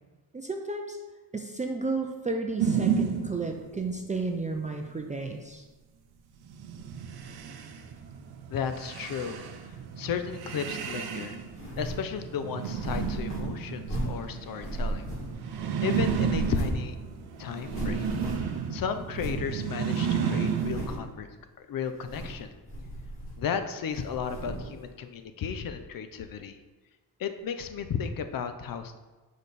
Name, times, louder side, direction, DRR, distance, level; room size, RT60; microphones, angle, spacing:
voice 1, 0.3-1.0 1.3-5.6, right 3 dB, 20° right, 2 dB, 0.5 m, -32 dB
sound 1, 2.6-3.9 6.5-20.9, right 7 dB, 70° right, 0.8 m, -32 dB
voice 2, 8.5-9.4 10.0-11.4 11.8-15.0 15.8-16.9 17.4-21.3 21.6-22.5 23.4-26.6 27.2-29.0, left 7 dB, 60° left, 9 dB, 0.7 m, -34 dB
sound 2, 11.5-12.1 12.6-14.3 14.6-15.6 15.9-16.9 17.2-17.3 17.5-18.6 19.1-19.5 20.0-20.1 20.5-21.1 21.9-22.4 22.7-23.6 23.9-24.7, right 1 dB, 30° left, 2.3 m, -35 dB
6.4 x 5.1 x 4.1 m, 1.3 s
cardioid pair, 115°, 39 cm